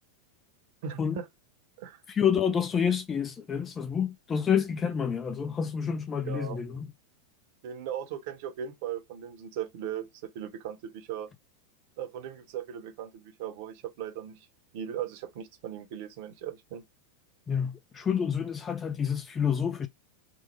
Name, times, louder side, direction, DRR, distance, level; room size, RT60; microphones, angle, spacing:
voice 1, 0.8-1.3 1.8-2.0 6.2-6.6 7.6-10.1 10.3-11.3 12.0-14.5 14.7-16.8, right 9 dB, 50° right, 0.7 m, -38 dB
voice 2, 2.1-6.7 17.5-19.9, left 7 dB, 20° left, 0.4 m, -28 dB
3.0 x 2.1 x 3.2 m
figure-of-eight pair, 90°, 0 cm